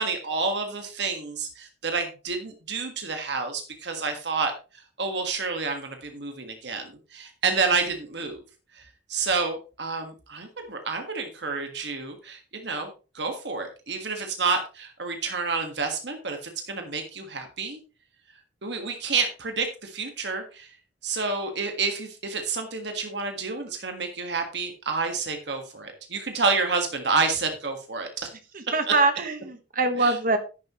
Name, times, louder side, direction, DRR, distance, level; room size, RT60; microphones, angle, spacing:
voice 1, 0.0-4.5 5.0-8.4 8.7-8.8 9.1-12.9 13.1-17.8 18.6-20.7 21.0-28.3 28.8-28.9 30.0-30.1, right 4 dB, 70° right, 5 dB, 1.7 m, -29 dB
voice 2, 28.5-30.4, right 3 dB, 50° right, 8 dB, 1.3 m, -23 dB
11.5 x 9.9 x 3.1 m, 0.33 s
head